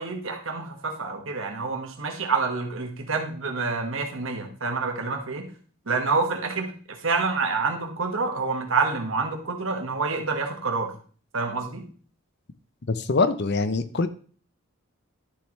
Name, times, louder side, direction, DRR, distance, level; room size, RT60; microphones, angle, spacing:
voice 1, 0.0-5.5 5.9-6.7 7.0-10.9 11.3-11.8, right 4 dB, 65° right, 3 dB, 1.7 m, -27 dB
voice 2, 12.9-14.1, left 3 dB, 50° left, 12 dB, 0.7 m, -23 dB
11.5 x 6.8 x 3.2 m, 0.42 s
head